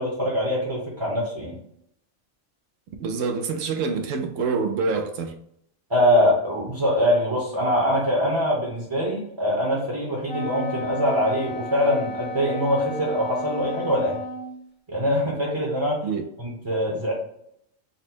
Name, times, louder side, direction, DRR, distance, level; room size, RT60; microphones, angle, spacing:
voice 1, 0.0-1.6 5.9-14.2 14.9-16.0 16.4-17.1, equal, 25° right, 0.9 m, -23 dB
voice 2, 3.0-5.3 16.0-16.3, right 4 dB, 75° right, 0.9 m, -26 dB
Wind instrument woodwind instrument, 10.3-14.6, left 2 dB, 85° left, 1.6 m, -33 dB
4.0 x 2.1 x 4.3 m
omnidirectional pair, 1.4 m